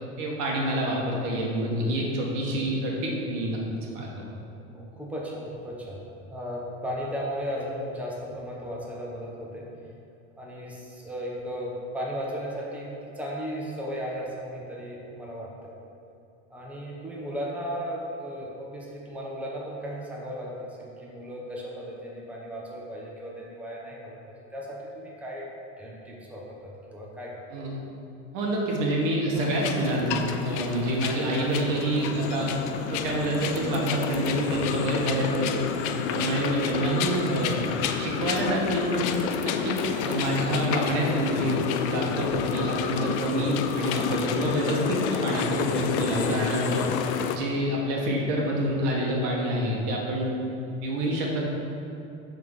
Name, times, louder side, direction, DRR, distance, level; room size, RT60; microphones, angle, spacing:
voice 1, 0.2-3.6 3.9-4.1 27.5-27.8 28.3-32.5 32.9-35.5 36.1-37.6 38.0-50.3 50.8-51.4, right 1 dB, 60° right, -2 dB, 1.7 m, -27 dB
voice 2, 4.7-9.8 10.4-15.7 16.5-24.2 24.5-25.5 25.8-27.4 35.9-36.2, equal, 5° right, -4 dB, 1.2 m, -36 dB
sound 1, 29.3-47.4, left 7 dB, 70° left, 0.6 m, -30 dB
7.5 x 3.9 x 5.6 m, 2.7 s
hypercardioid pair, 95°, 35 cm